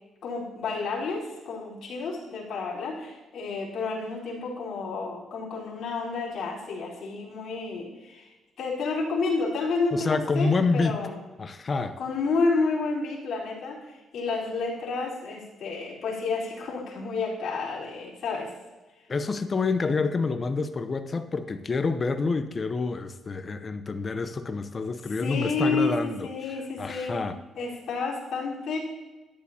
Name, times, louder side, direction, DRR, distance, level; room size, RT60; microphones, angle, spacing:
voice 1, 0.2-8.3 8.6-11.2 12.0-18.5 25.2-27.2 27.6-28.8, left 3 dB, 65° left, -6 dB, 4.1 m, -30 dB
voice 2, 9.9-11.0 11.4-12.0 19.1-26.3 26.8-27.4, left 4 dB, 35° left, 10 dB, 0.8 m, -27 dB
13.5 x 10.5 x 2.9 m, 1.2 s
cardioid pair, 90°, 0 cm